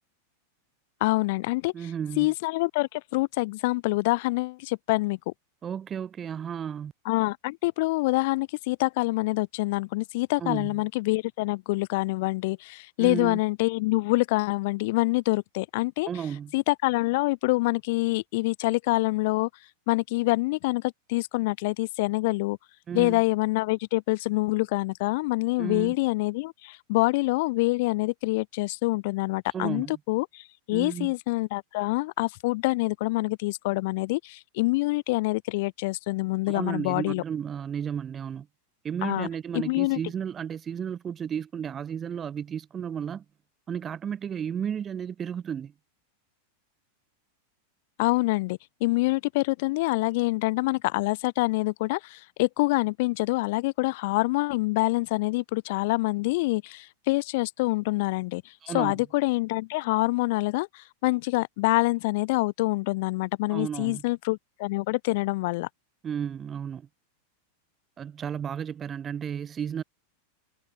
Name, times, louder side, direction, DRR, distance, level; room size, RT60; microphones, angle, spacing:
voice 1, 1.0-1.7 2.2-5.3 7.0-16.1 16.5-19.5 19.9-22.6 22.9-37.2 39.0-39.3 39.5-40.0 48.0-65.7, left 22 dB, 50° left, 4.6 m, -26 dB
voice 2, 1.7-2.3 5.6-6.9 10.4-10.8 13.0-13.4 16.1-16.5 22.9-23.2 25.6-25.9 29.5-30.0 30.7-31.1 36.5-38.5 38.8-43.2 43.7-45.7 58.6-59.0 63.5-64.0 66.0-66.9 68.0-69.8, right 8 dB, 25° right, 5.0 m, -33 dB
figure-of-eight pair, 90°, 0 cm